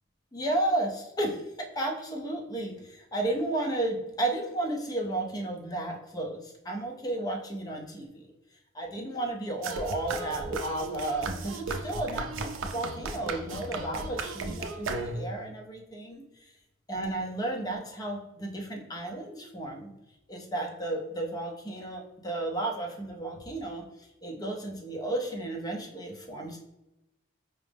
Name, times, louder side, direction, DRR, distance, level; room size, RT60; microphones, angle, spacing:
voice 1, 0.3-8.3 8.7-16.5 16.9-19.9 20.3-26.6, right 2 dB, 20° left, 1 dB, 0.6 m, -33 dB
sound 1, 9.6-15.4, right 3 dB, 65° right, 0.4 m, -35 dB
4.6 x 2.0 x 3.4 m, 0.93 s
head